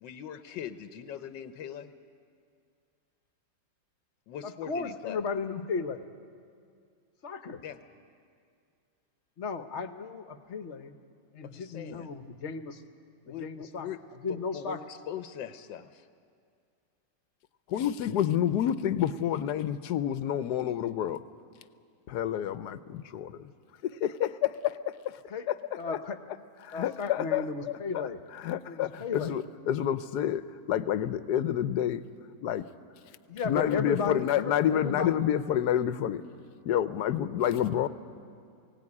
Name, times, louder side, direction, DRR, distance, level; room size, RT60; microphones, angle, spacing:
voice 1, 0.0-1.9 4.3-5.2 7.6-7.8 11.4-12.1 13.2-14.0 14.3-16.1, left 9 dB, 90° left, 10 dB, 1.5 m, -41 dB
voice 2, 4.4-6.0 7.2-7.6 9.4-11.0 11.3-12.8 13.3-13.9 14.2-14.8 25.3-25.5 25.8-26.2 26.7-28.2 28.7-29.4 33.3-35.1, left 5 dB, 50° left, 9 dB, 1.0 m, -35 dB
voice 3, 17.7-21.2 22.1-23.5 23.8-24.7 25.0-25.2 25.5-25.6 26.6-28.0 28.4-30.4 30.7-32.0 32.4-32.7 33.4-36.2 36.6-37.9, left 10 dB, 70° left, 13 dB, 1.2 m, -28 dB
21.0 x 17.5 x 9.8 m, 2.3 s
omnidirectional pair, 1.9 m